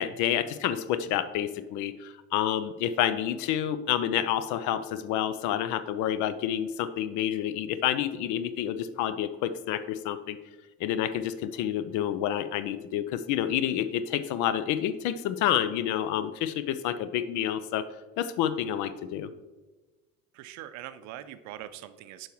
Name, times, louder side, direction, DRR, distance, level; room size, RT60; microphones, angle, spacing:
voice 1, 0.0-10.4 10.8-17.8 18.2-19.3, left 10 dB, 50° left, 13 dB, 0.6 m, -29 dB
voice 2, 20.4-22.3, right 12 dB, 45° right, 12 dB, 0.6 m, -42 dB
11.0 x 4.6 x 3.1 m, 1.2 s
figure-of-eight pair, 70°, 39 cm